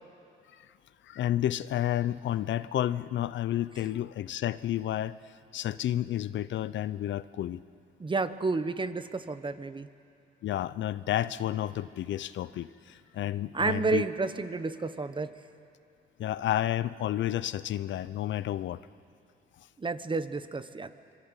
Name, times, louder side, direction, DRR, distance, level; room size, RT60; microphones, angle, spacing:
voice 1, 1.0-5.2 5.5-7.6 10.4-14.1 16.2-18.9, left 12 dB, 70° left, 16 dB, 0.7 m, -31 dB
voice 2, 8.0-9.9 13.5-15.3 19.8-20.9, right 3 dB, 25° right, 11 dB, 1.1 m, -30 dB
25.5 x 22.5 x 9.0 m, 2.4 s
cardioid pair, 90°, 20 cm